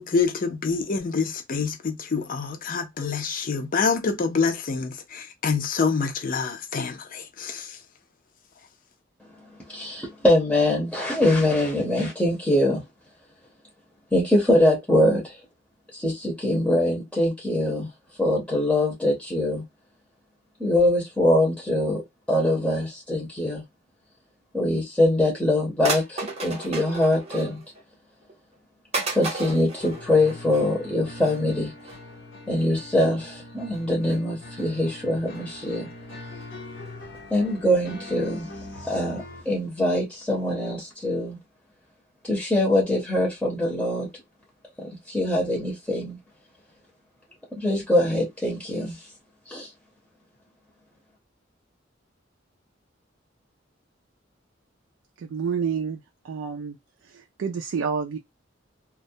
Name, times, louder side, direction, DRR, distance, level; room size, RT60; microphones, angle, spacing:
voice 1, 0.0-7.8, left 5 dB, 45° left, 0.5 m, -26 dB
voice 2, 9.7-12.8 14.1-15.4 15.9-17.9 18.2-19.6 20.6-22.0 22.3-23.6 24.5-27.6 29.1-31.7 32.5-35.9 37.3-38.5 38.8-41.4 42.2-44.1 45.1-46.2 47.6-49.0 49.5-49.7, left 1 dB, 5° left, 0.7 m, -23 dB
sound 1, 25.1-25.2 25.8-27.8 28.2-28.3 28.9-30.7 31.2-31.4 31.8-32.0 32.5-32.7 32.9-33.1 33.7-34.2 34.6-35.0 35.3-35.7 36.1-36.2 36.4-36.5 36.8-36.9 37.1-37.2 37.5-37.6 37.8-37.9, right 3 dB, 35° right, 0.8 m, -34 dB
sound 2, 29.8-39.4, left 2 dB, 75° left, 0.8 m, -42 dB
voice 3, 55.2-56.8 57.0-58.2, right 6 dB, 85° right, 0.3 m, -29 dB
2.2 x 2.1 x 2.6 m
head